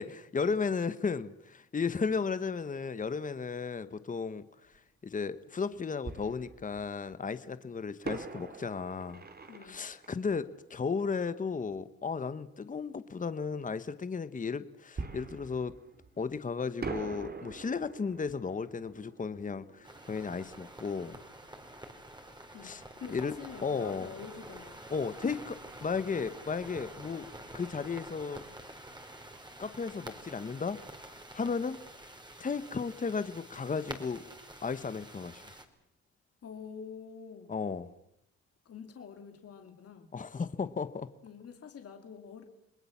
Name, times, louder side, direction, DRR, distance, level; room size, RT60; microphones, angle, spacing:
voice 1, 0.0-4.7 5.0-9.2 9.6-15.7 16.2-21.2 22.6-22.8 23.1-23.3 23.6-24.1 24.9-25.4 25.8-27.3 27.5-28.4 29.6-30.8 31.3-31.8 32.4-34.2 34.6-35.5 37.5-37.9 40.1-41.1, left 5 dB, 25° left, 1.1 m, -34 dB
Fireworks, 4.7-4.8 6.0-7.2 8.0-11.5 15.0-16.4 16.8-21.4 21.6-21.7 22.2-22.4, right 4 dB, 30° right, 2.5 m, -44 dB
voice 2, 9.5-9.9 22.5-24.8 25.2-25.4 36.4-37.5 38.6-40.1 41.2-42.4, left 6 dB, 50° left, 2.6 m, -46 dB
sound 1, 19.8-35.6, right 1 dB, 15° right, 3.9 m, -48 dB
29.0 x 20.0 x 7.3 m
cardioid pair, 90°, 30 cm